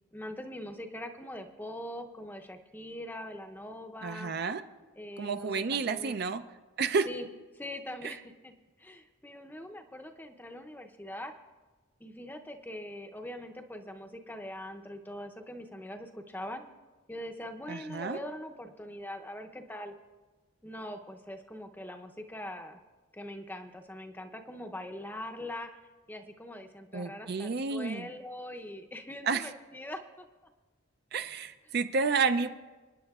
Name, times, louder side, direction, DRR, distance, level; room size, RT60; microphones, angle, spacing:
voice 1, 0.1-4.3 5.0-6.1 7.1-7.3 7.5-11.3 12.0-16.7 17.1-19.9 20.6-22.8 23.1-25.8 26.1-30.2, left 1 dB, 10° left, 5 dB, 0.6 m, -42 dB
voice 2, 4.0-4.6 5.2-6.4 6.8-7.1 8.0-8.1 17.7-18.2 26.9-28.1 29.2-29.5 31.1-32.5, right 4 dB, 50° right, 9 dB, 0.4 m, -30 dB
27.0 x 9.9 x 2.4 m, 1.3 s
head